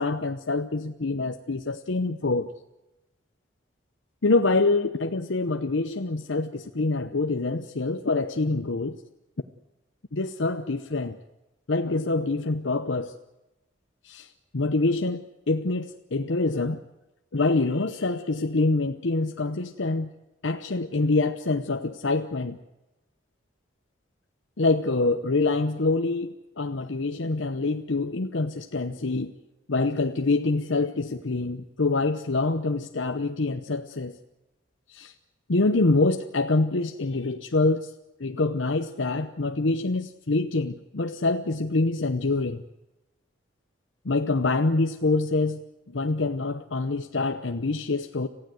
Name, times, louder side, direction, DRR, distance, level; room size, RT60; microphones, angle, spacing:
voice 1, 0.0-2.5 4.2-9.0 10.1-11.2 11.7-13.2 14.0-16.8 17.3-20.1 20.4-22.6 24.6-29.3 29.7-34.1 34.9-35.1 35.5-37.9 38.2-42.6 44.0-45.6 45.9-48.3, left 3 dB, 70° left, 6 dB, 0.9 m, -25 dB
27.0 x 15.5 x 7.9 m, 1.0 s
head